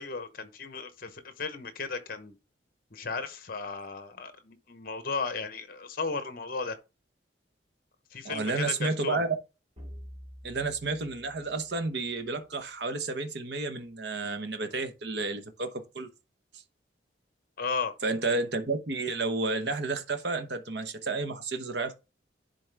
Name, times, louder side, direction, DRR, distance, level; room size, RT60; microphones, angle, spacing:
voice 1, 0.0-2.3 2.9-6.8 8.1-9.2 17.6-17.9, left 4 dB, 50° left, 0.9 m, -35 dB
voice 2, 8.2-9.3 10.4-16.1 18.0-21.9, right 3 dB, 65° right, 1.0 m, -31 dB
sound 1, 9.8-12.4, equal, 30° right, 2.9 m, -48 dB
10.5 x 4.0 x 3.4 m
head